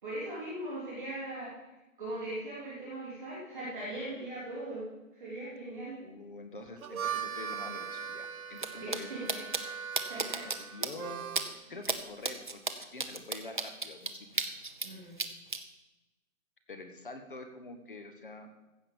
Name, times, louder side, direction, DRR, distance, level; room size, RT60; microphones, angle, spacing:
voice 1, 0.0-1.5 2.0-4.8 5.1-6.0 8.8-9.4 10.1-10.4 14.8-15.1, right 1 dB, ahead, -28 dB, 0.9 m, -39 dB
voice 2, 6.0-9.4 10.4-11.3 11.7-14.4 16.7-18.5, left 2 dB, 35° left, 7 dB, 1.2 m, -46 dB
Harmonica, 6.7-11.6, right 7 dB, 85° right, 0.9 m, -40 dB
sound 1, 8.6-8.7 8.9-9.0 9.3-9.6 10.0-10.6 10.8-10.9 11.4-11.5 11.8-12.0 12.2-14.9 15.2-15.6, right 4 dB, 35° right, 0.7 m, -32 dB
15.5 x 5.7 x 7.0 m, 1.0 s
hypercardioid pair, 180°, 42 cm